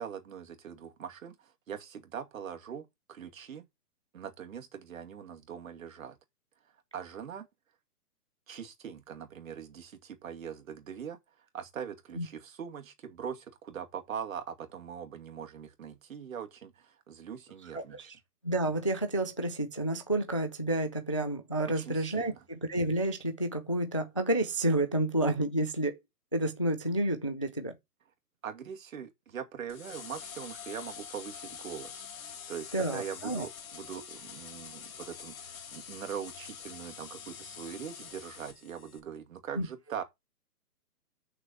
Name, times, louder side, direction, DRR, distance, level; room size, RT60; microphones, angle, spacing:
voice 1, 0.0-3.6 4.1-6.2 6.9-7.5 8.5-11.2 11.5-18.1 21.7-22.4 28.4-40.0, right 8 dB, 60° right, 2.4 m, -42 dB
voice 2, 17.7-18.1 18.4-26.0 26.3-27.7 32.7-33.5 39.6-39.7, right 1 dB, 20° left, 0.4 m, -30 dB
sound 1, 29.7-39.0, left 7 dB, 60° left, 2.4 m, -46 dB
6.3 x 5.0 x 6.8 m
hypercardioid pair, 165°, 46 cm